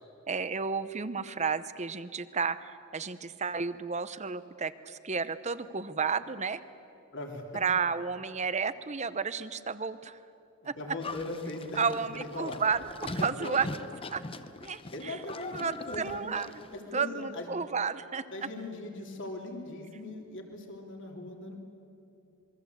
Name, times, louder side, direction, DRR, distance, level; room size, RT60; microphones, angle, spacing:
voice 1, 0.3-6.6 7.5-10.2 10.6-10.8 11.8-13.7 14.1-14.2 14.6-15.2 15.5-16.5 16.9-18.3, right 5 dB, 30° right, 14 dB, 0.8 m, -32 dB
voice 2, 7.1-7.6 10.8-12.6 13.2-13.7 14.9-16.3 16.7-17.5 18.3-21.6, left 2 dB, 55° left, 2 dB, 3.1 m, -40 dB
Livestock farm animals working animals, 11.0-16.8, left 2 dB, 25° left, 0.7 m, -41 dB
27.0 x 22.5 x 8.2 m, 2.7 s
head